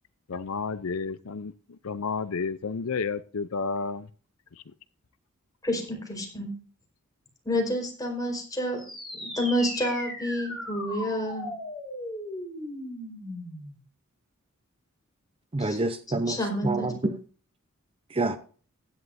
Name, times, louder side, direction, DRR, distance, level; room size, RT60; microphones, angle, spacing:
voice 1, 0.3-1.5 1.8-4.1, left 5 dB, 70° left, 0.6 m, -31 dB
voice 2, 5.6-6.5 7.4-8.8 9.2-11.5 15.6-15.8 16.3-16.9, equal, 15° left, 4.5 m, -29 dB
sound 1, 8.7-13.8, left 1 dB, ahead, 6.4 m, -37 dB
voice 3, 15.5-16.4 16.6-17.2 18.1-18.4, right 2 dB, 25° right, 0.8 m, -27 dB
15.5 x 11.0 x 2.7 m
head